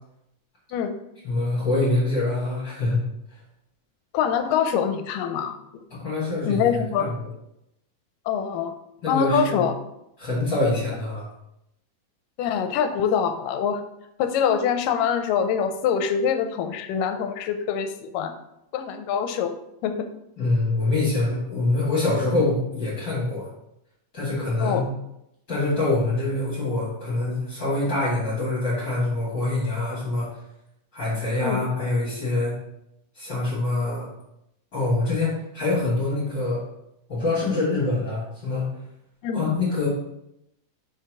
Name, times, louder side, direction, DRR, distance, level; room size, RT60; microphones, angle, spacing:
voice 1, 1.2-3.0 3.3-3.4 5.9-7.3 9.0-9.6 10.2-11.3 20.4-23.5 24.1-24.9 25.5-30.3 30.9-32.5 33.2-34.1 34.7-36.6 37.1-38.7 39.3-39.9, left 2 dB, 40° left, -7 dB, 2.2 m, -25 dB
voice 2, 4.1-5.5 6.4-7.2 8.3-8.7 9.1-9.7 12.4-13.8 14.2-18.3 18.7-19.5 19.8-20.1 24.6-24.9 31.4-31.6 39.2-39.4, left 7 dB, 85° left, 8 dB, 2.2 m, -24 dB
5.4 x 4.6 x 6.1 m, 0.82 s
omnidirectional pair, 3.8 m